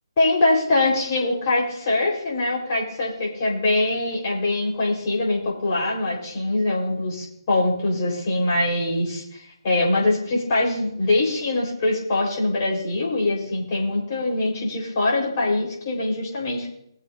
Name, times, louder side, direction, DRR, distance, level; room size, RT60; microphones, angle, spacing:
voice 1, 0.2-16.7, left 2 dB, 35° left, -3 dB, 4.2 m, -23 dB
20.5 x 7.8 x 2.7 m, 0.75 s
figure-of-eight pair, 145°, 3 cm